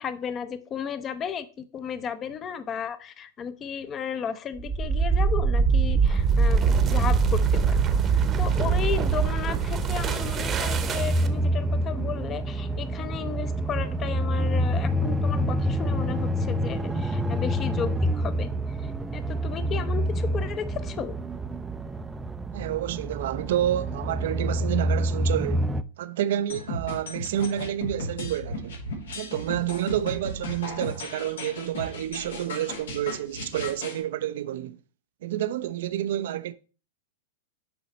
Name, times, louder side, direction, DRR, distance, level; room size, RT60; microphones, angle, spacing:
voice 1, 0.0-21.2, left 7 dB, 30° left, 0.7 m, -34 dB
sound 1, 4.6-11.4, right 5 dB, 30° right, 0.9 m, -23 dB
sound 2, 9.1-25.8, equal, 10° right, 0.5 m, -28 dB
voice 2, 22.5-25.7 26.0-28.8 29.1-34.8 35.2-36.5, right 11 dB, 70° right, 0.5 m, -29 dB
sound 3, 26.5-34.0, left 2 dB, 85° left, 2.6 m, -36 dB
7.0 x 4.9 x 4.1 m
hypercardioid pair, 110°, 0 cm